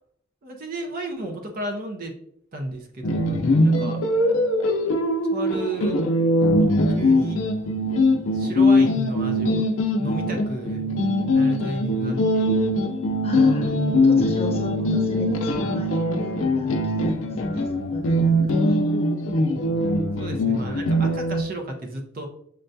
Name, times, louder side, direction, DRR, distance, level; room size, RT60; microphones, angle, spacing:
voice 1, 0.4-2.2 2.5-4.0 5.3-6.1 7.0-7.4 8.3-9.7 10.0-10.8 11.1-12.5 20.2-22.3, right 2 dB, 45° right, 3 dB, 0.5 m, -33 dB
sound 1, 3.0-21.4, left 1 dB, 75° left, 0.5 m, -21 dB
voice 2, 13.2-13.7 14.0-18.8, equal, 30° left, 0 dB, 0.7 m, -34 dB
6.3 x 2.2 x 2.6 m, 0.72 s
head